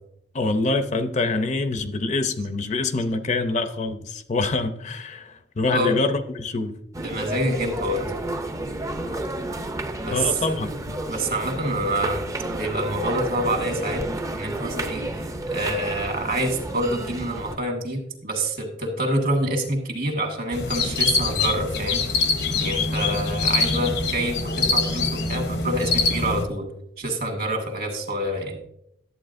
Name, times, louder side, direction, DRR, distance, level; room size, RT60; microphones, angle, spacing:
voice 1, 0.3-6.8 10.1-11.0, left 3 dB, 40° left, 9 dB, 0.5 m, -25 dB
sound 1, 6.9-17.6, right 1 dB, 20° right, 0.5 m, -31 dB
voice 2, 7.0-8.1 10.0-10.6 11.1-12.2 12.5-14.0 14.3-15.1 15.5-22.0 22.6-26.7 27.0-28.6, right 1 dB, 55° right, 3 dB, 1.6 m, -26 dB
sound 2, 20.5-26.4, left 3 dB, 70° left, 0.8 m, -24 dB
11.0 x 8.0 x 2.6 m, 0.78 s
head